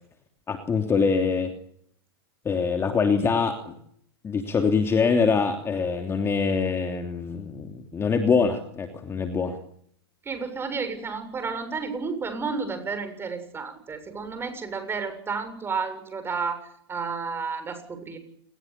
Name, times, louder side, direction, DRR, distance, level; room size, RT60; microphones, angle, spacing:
voice 1, 0.5-1.5 2.4-3.7 4.2-9.6, left 5 dB, 20° left, 6 dB, 3.1 m, -24 dB
voice 2, 10.2-18.2, right 5 dB, 15° right, 9 dB, 7.2 m, -31 dB
28.5 x 20.5 x 8.7 m, 0.69 s
hypercardioid pair, 115°, 13 cm